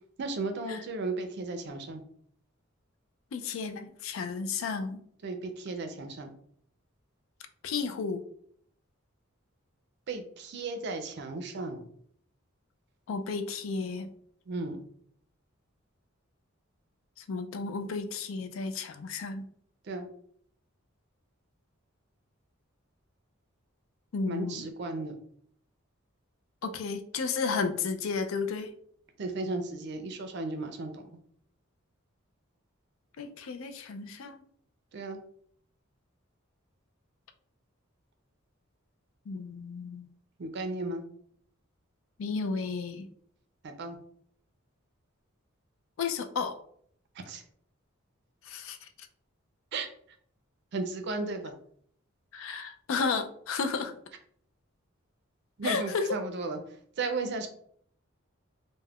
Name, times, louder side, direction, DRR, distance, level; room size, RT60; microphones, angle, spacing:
voice 1, 0.2-2.0 5.2-6.3 10.1-11.8 14.5-14.8 19.9-20.1 24.3-25.1 29.2-31.2 34.9-35.2 40.4-41.0 43.6-44.0 47.3-47.4 49.7-49.9 50.7-51.5 55.6-56.6 57.0-57.5, right 3 dB, 55° right, 6 dB, 0.4 m, -35 dB
voice 2, 3.3-5.0 7.6-8.2 13.1-14.1 17.2-19.5 24.1-24.7 26.6-28.7 33.2-34.4 39.3-40.1 42.2-43.1 46.0-46.6 48.4-48.8 52.3-53.9 55.6-56.2, left 4 dB, 70° left, 9 dB, 0.4 m, -33 dB
2.3 x 2.1 x 3.4 m, 0.62 s
head